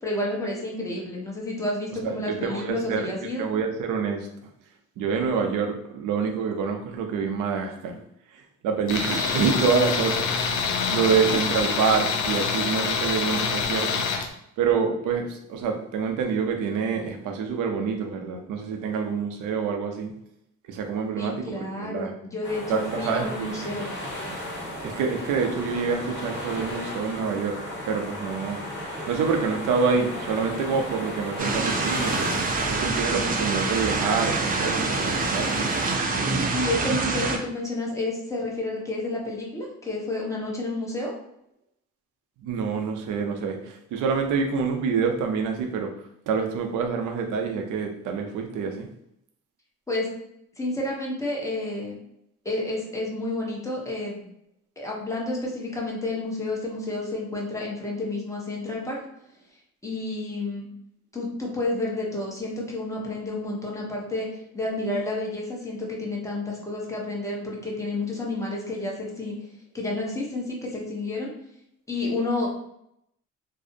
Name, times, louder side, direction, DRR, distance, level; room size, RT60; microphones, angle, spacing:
voice 1, 0.0-3.5 21.2-23.9 36.5-41.1 49.9-50.1 50.6-52.0 52.4-54.2 54.8-59.0 59.8-60.7 61.1-69.3 69.7-71.3 71.9-72.5, left 2 dB, 10° left, -3 dB, 0.8 m, -30 dB
voice 2, 2.0-4.3 5.0-8.0 8.3-10.3 10.9-14.0 14.6-20.1 20.7-22.1 22.7-23.8 24.8-27.6 27.9-28.6 29.1-32.3 32.7-35.6 42.4-45.9 46.3-48.9, right 5 dB, 85° right, 4 dB, 0.5 m, -27 dB
Tools, 8.9-14.3, left 5 dB, 80° left, 0.5 m, -26 dB
sound 1, 22.4-36.0, left 1 dB, 40° left, 1.2 m, -35 dB
sound 2, 31.4-37.4, right 3 dB, 30° right, 0.4 m, -26 dB
2.5 x 2.0 x 2.5 m, 0.77 s
cardioid pair, 90°, 30 cm